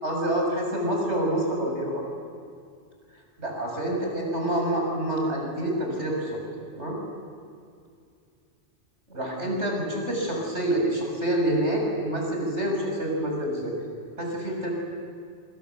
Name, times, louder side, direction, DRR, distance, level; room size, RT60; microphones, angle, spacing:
voice 1, 0.0-2.0 3.4-6.4 6.7-7.0 9.1-13.7 14.2-14.7, right 1 dB, 90° right, 0 dB, 7.2 m, -27 dB
27.5 x 25.0 x 8.3 m, 2.3 s
omnidirectional pair, 1.1 m